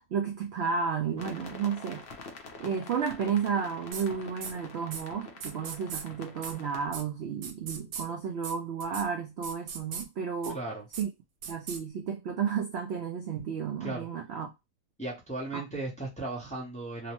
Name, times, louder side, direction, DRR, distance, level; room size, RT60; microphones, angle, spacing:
voice 1, 0.1-2.1 2.6-10.6 11.0-11.1 11.5-14.5 15.5-15.6, right 6 dB, 65° right, 0.6 m, -32 dB
sound 1, 1.2-6.9, left 4 dB, 55° left, 0.7 m, -46 dB
sound 2, 3.9-4.0 4.4-4.5 4.9-5.0 5.4-6.0 6.4-6.5 6.9-7.0 7.4-8.0 8.4-8.5 8.8-9.0 9.4-10.0 10.4-10.5 10.9-11.0 11.4-11.8, right 6 dB, 90° right, 1.1 m, -38 dB
voice 2, 10.5-10.9 13.8-14.1 15.0-17.1, right 2 dB, 5° left, 0.6 m, -36 dB
2.9 x 2.1 x 2.9 m
omnidirectional pair, 1.6 m